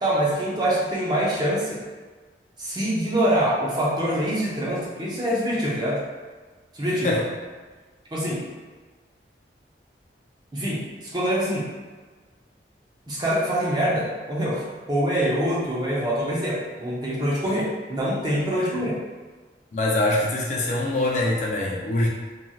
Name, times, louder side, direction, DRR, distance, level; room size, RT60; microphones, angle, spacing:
voice 1, 0.0-1.8 2.6-6.0 6.7-7.1 8.1-8.4 10.5-11.7 13.1-19.0, equal, 25° right, -6 dB, 0.6 m, -25 dB
voice 2, 6.9-7.3 18.6-18.7 19.7-22.1, left 2 dB, 40° left, -3 dB, 0.4 m, -24 dB
3.0 x 2.6 x 2.3 m, 1.4 s
head